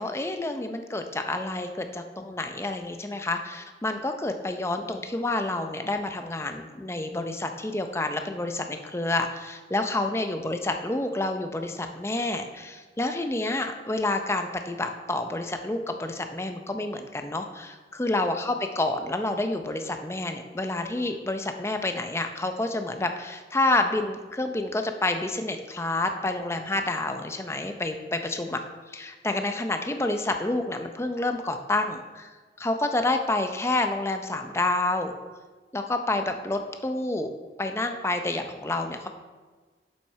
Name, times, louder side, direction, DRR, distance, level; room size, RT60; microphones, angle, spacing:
voice 1, 0.0-28.6 28.9-32.3 32.6-35.1 35.7-37.3 37.6-39.1, left 2 dB, 15° left, 6 dB, 0.5 m, -29 dB
7.4 x 7.3 x 4.7 m, 1.4 s
head